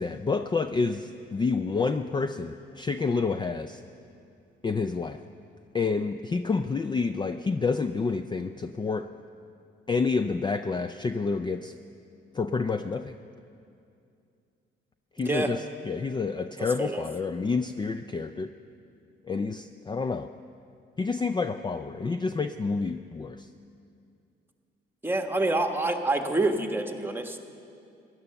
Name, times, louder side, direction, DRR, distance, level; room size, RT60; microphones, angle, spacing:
voice 1, 0.0-3.8 4.6-5.2 5.7-9.1 9.9-11.7 12.3-13.1 15.2-18.5 19.3-20.3 21.0-23.5, left 4 dB, 20° left, 9 dB, 0.4 m, -29 dB
voice 2, 15.2-15.5 16.6-17.0 25.0-27.4, right 2 dB, 10° right, 5 dB, 1.3 m, -27 dB
15.5 x 11.0 x 6.9 m, 2.5 s
cardioid pair, 90°, 20 cm